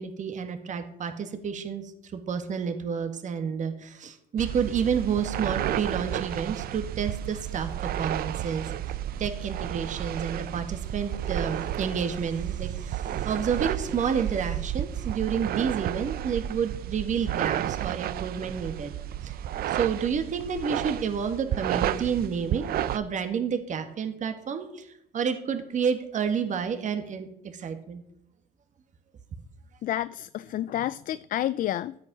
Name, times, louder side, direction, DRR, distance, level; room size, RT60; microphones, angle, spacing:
voice 1, 0.0-1.8 2.1-18.9 19.2-19.4 19.7-28.0, right 6 dB, 45° right, 7 dB, 1.7 m, -30 dB
sound 1, 4.4-23.0, right 12 dB, 65° right, 0.6 m, -32 dB
voice 2, 29.8-32.0, left 12 dB, 55° left, 15 dB, 0.4 m, -29 dB
13.5 x 8.5 x 6.2 m, 0.73 s
cardioid pair, 110°, 17 cm